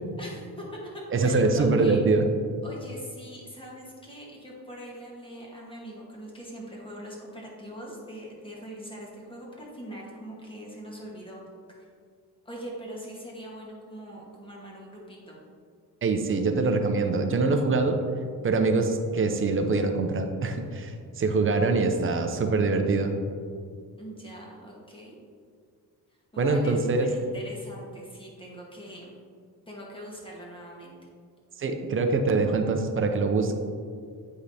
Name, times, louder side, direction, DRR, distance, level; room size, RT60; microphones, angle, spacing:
voice 1, 0.2-2.0 2.6-11.4 11.7-11.8 12.4-15.4 24.0-25.2 26.3-29.2 29.7-30.9, equal, 15° left, -3 dB, 1.3 m, -42 dB
voice 2, 1.1-2.3 16.0-18.0 18.4-23.1 26.4-27.1 31.6-33.6, right 3 dB, 35° right, 6 dB, 0.5 m, -24 dB
8.9 x 5.0 x 2.7 m, 2.1 s
cardioid pair, 155°, 38 cm